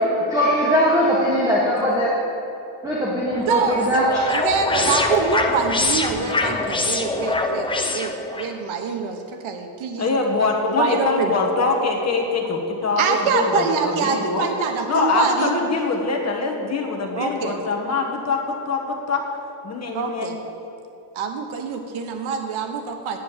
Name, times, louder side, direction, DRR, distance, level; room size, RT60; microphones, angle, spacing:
voice 1, 0.0-2.1 2.8-4.2, equal, 10° right, -7 dB, 1.7 m, -20 dB
sound 1, 3.3-8.5, left 3 dB, 10° left, 0.6 m, -24 dB
voice 2, 3.5-4.0 4.3-10.1 10.8-11.3 13.0-15.6 17.2-17.6 19.9-20.4 21.1-23.2, right 5 dB, 80° right, 5 dB, 1.2 m, -25 dB
voice 3, 10.0-14.5 14.8-19.2 19.6-20.4, left 3 dB, 30° left, 1 dB, 1.6 m, -23 dB
9.9 x 8.6 x 7.4 m, 2.9 s
cardioid pair, 160°, 48 cm